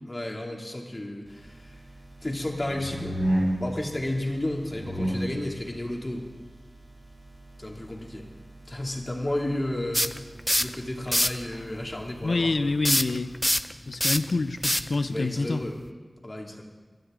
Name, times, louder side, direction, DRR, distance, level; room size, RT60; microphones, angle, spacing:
voice 1, 0.0-1.7 2.2-3.2 3.6-6.3 7.6-8.2 8.7-10.2 10.6-12.7 15.1-15.8 16.2-16.6, left 1 dB, 35° left, 0 dB, 2.6 m, -32 dB
sound 1, 1.3-13.5, equal, 55° right, 4.6 m, -36 dB
sound 2, 9.9-10.7 11.1-11.4 12.8-15.9, equal, 10° left, 0.6 m, -25 dB
voice 2, 12.2-13.3 13.9-15.6, left 3 dB, 90° left, 11 dB, 0.6 m, -27 dB
24.0 x 13.0 x 3.8 m, 1.3 s
wide cardioid pair, 60°, 0 cm